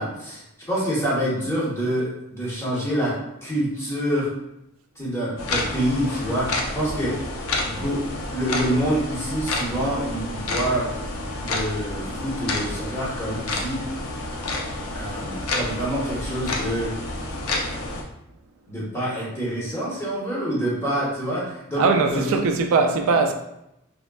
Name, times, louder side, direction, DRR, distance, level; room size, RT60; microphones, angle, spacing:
voice 1, 0.0-4.3 5.0-7.1 7.6-8.0 8.3-10.9 11.4-13.8 14.9-16.9 18.7-21.8 22.1-22.4, equal, 15° left, 0.9 m, -26 dB
sound 1, 5.4-18.0, left 2 dB, 85° left, 0.5 m, -29 dB
voice 2, 21.8-23.3, right 4 dB, 75° right, 0.3 m, -20 dB
3.4 x 2.2 x 2.3 m
head